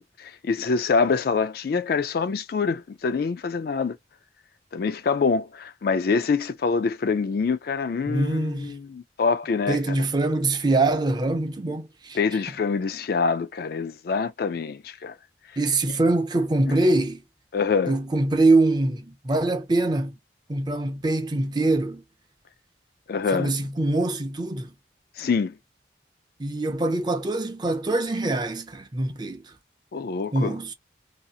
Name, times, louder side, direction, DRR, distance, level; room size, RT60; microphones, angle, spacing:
voice 1, 0.0-4.0 4.7-9.8 12.1-15.1 17.5-18.0 23.1-23.5 25.2-25.5 29.9-30.5, left 5 dB, 55° left, 0.3 m, -25 dB
voice 2, 8.1-8.8 9.7-12.2 15.6-17.2 17.9-20.1 20.5-22.0 23.3-24.7 26.4-29.4 30.3-30.7, right 2 dB, 25° right, 0.5 m, -24 dB
2.7 x 2.4 x 2.7 m
head